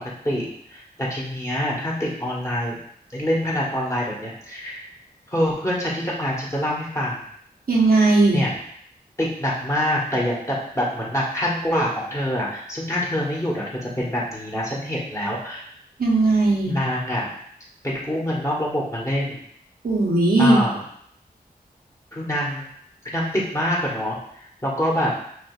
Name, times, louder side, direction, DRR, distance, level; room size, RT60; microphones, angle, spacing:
voice 1, 0.2-2.8 3.1-4.8 5.3-7.2 8.3-8.5 9.2-15.7 16.7-17.3 17.8-19.4 20.4-20.8 22.1-22.6 23.1-24.2 24.6-25.1, equal, 20° left, -5 dB, 1.4 m, -25 dB
voice 2, 7.7-8.4 16.0-16.7 19.8-20.6, right 2 dB, 65° right, -4 dB, 1.0 m, -17 dB
6.3 x 2.5 x 2.5 m, 0.66 s
wide cardioid pair, 55°, 17 cm